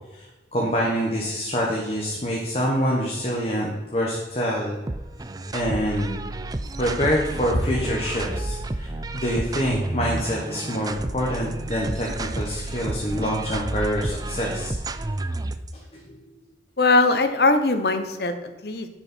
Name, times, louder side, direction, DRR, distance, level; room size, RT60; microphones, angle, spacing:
voice 1, 0.5-4.8 5.5-6.1 6.8-14.7 15.9-16.0 16.3-16.4, equal, 35° left, -2 dB, 1.4 m, -26 dB
sound 1, 4.9-15.7, right 2 dB, 20° right, 0.4 m, -31 dB
voice 2, 16.8-18.9, left 3 dB, 65° left, 8 dB, 1.0 m, -21 dB
10.0 x 6.4 x 4.5 m, 1.1 s
head